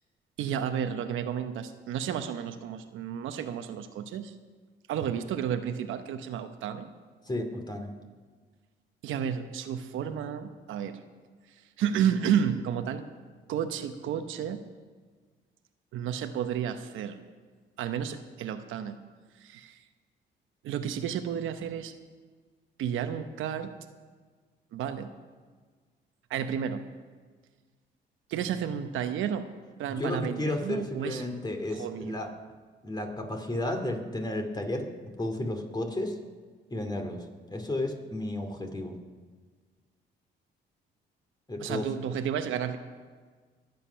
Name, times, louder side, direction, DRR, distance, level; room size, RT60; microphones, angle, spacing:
voice 1, 0.4-4.3 4.9-6.9 9.0-11.0 11.8-13.0 13.5-14.6 15.9-17.2 17.8-19.0 19.4-19.8 20.6-21.9 22.8-23.7 24.7-25.1 26.3-26.8 28.3-29.5 29.8-31.2 31.7-32.1 41.6-42.8, right 8 dB, 85° right, 8 dB, 1.0 m, -31 dB
voice 2, 7.3-7.9 30.0-32.3 32.8-34.9 35.2-36.2 36.7-39.0 41.5-41.9, left 1 dB, 20° left, 5 dB, 2.5 m, -33 dB
23.0 x 8.3 x 5.7 m, 1.5 s
cardioid pair, 90°, 20 cm